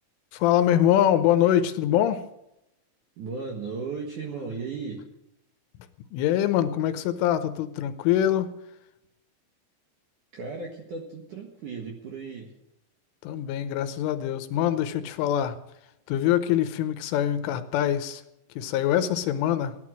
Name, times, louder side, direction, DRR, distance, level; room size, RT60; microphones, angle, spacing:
voice 1, 0.3-2.2 6.1-8.5 13.2-15.6 16.1-18.2 18.6-19.8, left 11 dB, 80° left, 10 dB, 3.2 m, -24 dB
voice 2, 3.2-5.0 10.3-12.5, right 4 dB, 60° right, 0 dB, 2.1 m, -35 dB
15.0 x 11.5 x 6.1 m, 0.85 s
omnidirectional pair, 5.8 m